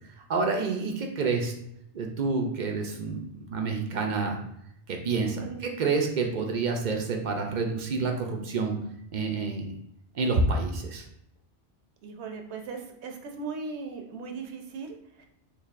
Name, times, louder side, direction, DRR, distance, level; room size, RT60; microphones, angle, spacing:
voice 1, 0.3-1.5 1.9-4.4 4.9-8.8 9.1-9.7 10.1-11.1, right 4 dB, 55° right, 2 dB, 0.5 m, -28 dB
voice 2, 5.2-5.6 12.0-15.0, right 4 dB, 75° right, 4 dB, 0.9 m, -38 dB
4.7 x 2.7 x 2.4 m, 0.77 s
omnidirectional pair, 1.2 m